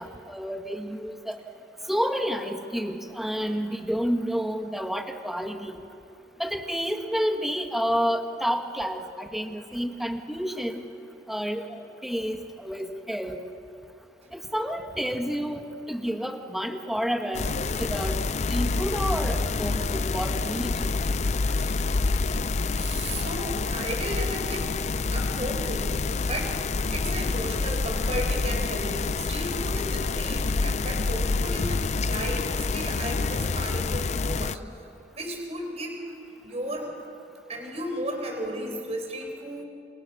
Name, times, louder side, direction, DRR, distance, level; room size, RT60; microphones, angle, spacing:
voice 1, 0.0-1.4 1.9-5.8 6.4-10.8 11.3-13.4 14.3-17.5 17.8-18.2 18.5-21.0, equal, ahead, 4 dB, 1.7 m, -30 dB
sound 1, 17.3-34.6, left 3 dB, 40° left, 0.5 m, -27 dB
voice 2, 21.6-22.0 22.3-24.7 25.1-26.6 26.9-34.6 35.1-36.0 36.4-36.9 37.5-39.6, right 1 dB, 35° right, 2 dB, 5.0 m, -35 dB
29.0 x 29.0 x 6.2 m, 2.8 s
head